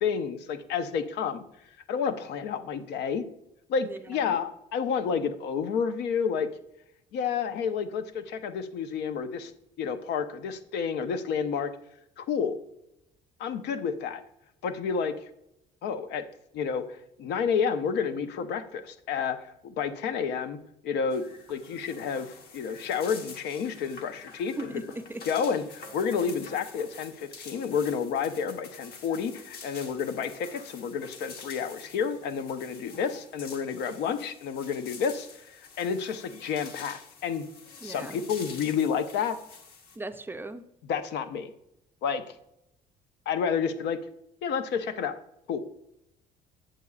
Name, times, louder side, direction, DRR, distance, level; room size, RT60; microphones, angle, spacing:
voice 1, 0.0-1.4 1.9-3.2 3.7-6.5 7.1-9.5 9.8-11.7 12.2-12.6 13.4-14.2 14.6-15.2 15.8-16.2 16.5-20.6 20.8-21.2 21.5-24.7 25.3-37.5 37.8-39.4 40.9-41.5 42.0-42.2 43.3-44.0 44.4-45.2 45.5-45.6, left 6 dB, 80° left, 10 dB, 0.6 m, -30 dB
voice 2, 3.8-4.4 24.6-25.2 37.8-38.3 40.0-40.6, right 2 dB, 15° right, 9 dB, 0.4 m, -38 dB
sound 1, 21.1-40.0, left 4 dB, 65° left, 1.1 m, -47 dB
8.1 x 7.5 x 2.3 m, 0.81 s
cardioid pair, 110°, 17 cm